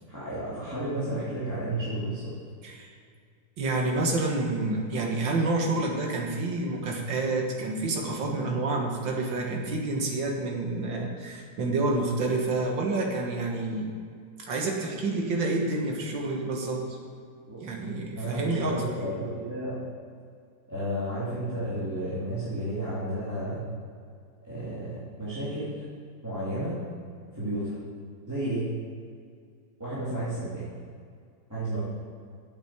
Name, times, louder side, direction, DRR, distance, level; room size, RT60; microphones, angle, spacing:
voice 1, 0.1-2.3 17.5-17.7 18.1-19.8 20.7-23.6 24.4-25.8 26.2-26.8 27.3-27.8 28.3-28.7 29.8-30.6 31.5-31.8, right 1 dB, 10° right, -11 dB, 3.0 m, -32 dB
voice 2, 2.6-2.9 3.6-14.0 14.5-17.0 17.6-18.8, right 2 dB, 85° right, 0 dB, 2.3 m, -28 dB
8.6 x 8.4 x 8.3 m, 2.2 s
omnidirectional pair, 2.0 m